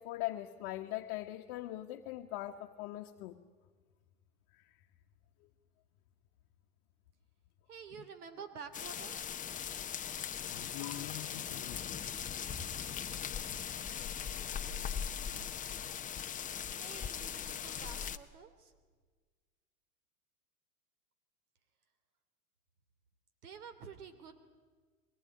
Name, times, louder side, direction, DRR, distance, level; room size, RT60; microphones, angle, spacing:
voice 1, 0.0-3.4 8.0-8.1 10.1-10.2 10.5-12.1, left 15 dB, 50° left, 3 dB, 1.4 m, -42 dB
voice 2, 7.7-9.2 16.8-18.7 23.4-24.5, right 6 dB, 75° right, 9 dB, 3.0 m, -49 dB
sound 1, 8.7-18.2, left 8 dB, 15° left, 0.8 m, -39 dB
22.5 x 19.5 x 9.5 m, 1.5 s
hypercardioid pair, 110°, 45 cm